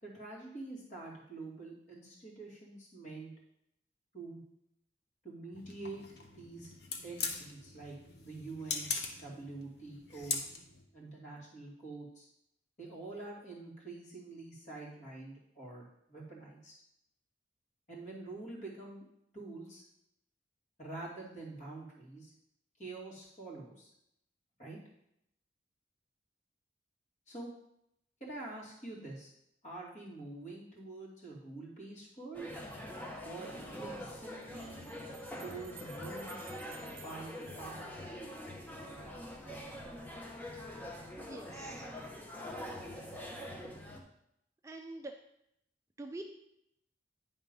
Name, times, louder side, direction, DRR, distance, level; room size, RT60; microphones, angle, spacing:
voice 1, 0.0-3.3 4.1-4.4 5.2-6.7 7.0-8.9 9.2-10.4 10.9-12.3 12.8-16.7 17.9-19.0 19.3-19.8 20.8-22.3 22.8-23.9 24.6-24.8 27.3-27.5 28.2-29.3 29.6-32.5 33.2-34.8 35.4-36.4 37.0-38.1 38.8-39.5, right 3 dB, 40° left, -4 dB, 2.3 m, -46 dB
sound 1, 5.5-10.8, left 4 dB, 60° left, 0.9 m, -41 dB
sound 2, 32.3-44.0, left 1 dB, 10° left, 0.8 m, -44 dB
sound 3, 34.4-38.4, right 8 dB, 70° right, 0.9 m, -57 dB
voice 2, 41.2-41.9 44.6-45.1 46.0-46.2, right 2 dB, 15° right, 3 dB, 0.4 m, -45 dB
9.6 x 3.6 x 5.3 m, 0.79 s
head